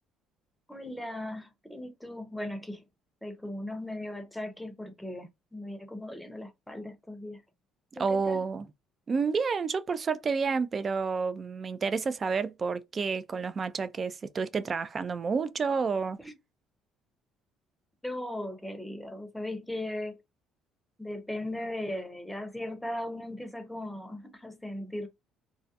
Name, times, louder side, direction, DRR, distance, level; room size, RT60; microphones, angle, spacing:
voice 1, 0.7-2.8 3.2-7.4 8.1-8.5 16.2-16.3 18.0-20.2 21.0-25.1, left 1 dB, 5° left, 0.6 m, -38 dB
voice 2, 8.0-8.7 9.1-16.2, right 5 dB, 35° right, 0.3 m, -30 dB
2.3 x 2.1 x 2.7 m
supercardioid pair, 90°, 0 cm